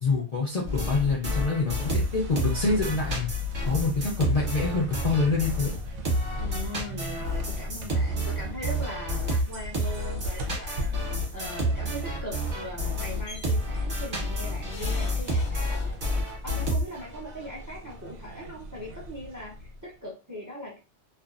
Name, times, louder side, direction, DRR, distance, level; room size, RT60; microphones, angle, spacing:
voice 1, 0.0-3.3 3.6-5.7, left 3 dB, 45° left, -4 dB, 0.5 m, -26 dB
sound 1, 0.6-5.8 6.0-17.2, equal, 40° right, 1.0 m, -29 dB
sound 2, 1.5-20.0, left 2 dB, 80° right, 0.9 m, -38 dB
voice 2, 6.4-10.9 11.3-16.0 16.4-20.8, left 1 dB, 25° right, -2 dB, 0.5 m, -40 dB
sound 3, 13.3-13.5 14.7-16.3 17.5-17.6 17.9-18.0, left 3 dB, 70° left, 1.0 m, -44 dB
2.5 x 2.3 x 2.4 m, 0.31 s
omnidirectional pair, 1.3 m